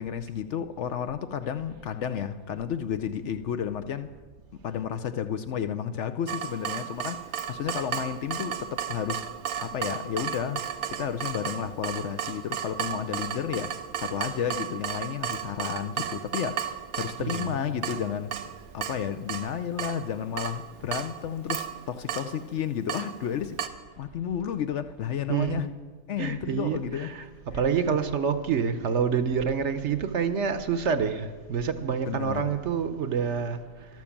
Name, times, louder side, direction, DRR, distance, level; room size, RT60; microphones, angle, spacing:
voice 1, 0.0-4.1 4.6-9.3 9.6-25.7 26.1-27.2 27.5-27.6 27.9-28.0 32.1-32.5, left 8 dB, 65° left, 0.8 m, -32 dB
Water tap faucet / Drip, 6.3-23.7, right 9 dB, 90° right, 1.2 m, -35 dB
voice 2, 17.2-17.6 25.3-25.6 26.2-27.2 27.5-33.6, right 6 dB, 60° right, 1.0 m, -27 dB
12.5 x 12.0 x 7.2 m
omnidirectional pair, 1.5 m